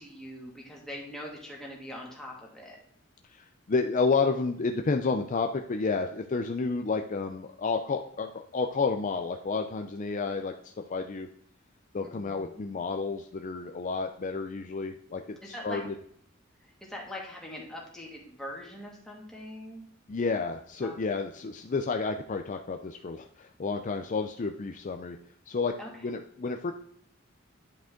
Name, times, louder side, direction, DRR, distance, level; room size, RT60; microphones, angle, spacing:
voice 1, 0.0-2.8 12.0-12.6 15.4-15.8 16.6-19.8 20.8-21.2 25.8-25.9, left 1 dB, 5° left, -3 dB, 2.2 m, -42 dB
voice 2, 3.3-11.3 11.9-15.2 15.5-15.9 20.1-25.2 25.5-25.7 26.0-26.7, left 4 dB, 40° left, 5 dB, 0.5 m, -30 dB
10.5 x 5.1 x 3.8 m, 0.66 s
head